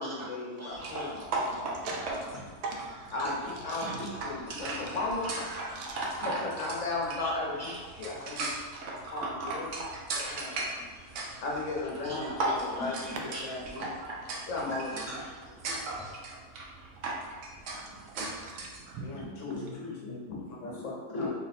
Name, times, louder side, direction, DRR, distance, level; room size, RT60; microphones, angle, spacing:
voice 1, 0.0-1.3 3.1-3.3 3.6-5.8 6.2-7.6 8.0-8.5 9.1-9.8 10.1-10.6 11.4-12.9 13.2-13.8 14.5-15.2 19.0-21.3, left 2 dB, 60° left, -3 dB, 1.0 m, -36 dB
voice 2, 0.6-1.9 2.5-2.6 3.2-3.5 3.8-4.0 4.5-4.7 5.2-5.3 7.2-7.3 7.6-8.4 9.6-11.4 12.0-16.1, equal, 20° left, -8 dB, 0.4 m, -44 dB
sound 1, 0.7-18.8, right 2 dB, 65° right, 0.9 m, -37 dB
voice 3, 1.3-2.3 2.6-3.1 3.7-3.8 4.5-5.0 5.3-6.1 17.6-19.8, right 3 dB, 90° right, 0 dB, 1.2 m, -42 dB
4.1 x 2.1 x 4.0 m, 1.4 s
omnidirectional pair, 1.6 m